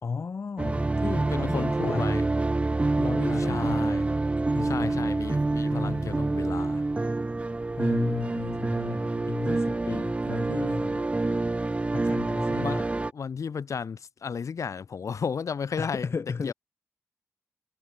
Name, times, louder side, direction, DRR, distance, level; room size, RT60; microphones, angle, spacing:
voice 1, 0.0-2.3 3.0-4.0 4.5-5.1 5.7-6.3 7.8-11.1 11.9-12.8 15.8-16.5, left 5 dB, 50° left, 1.9 m, -34 dB
sound 1, 0.6-13.1, right 2 dB, 25° right, 1.2 m, -27 dB
voice 2, 1.3-2.2 3.4-4.1 4.6-6.8 12.6-16.1 16.4-16.5, left 6 dB, 75° left, 4.6 m, -34 dB
wide cardioid pair, 170°, 5 cm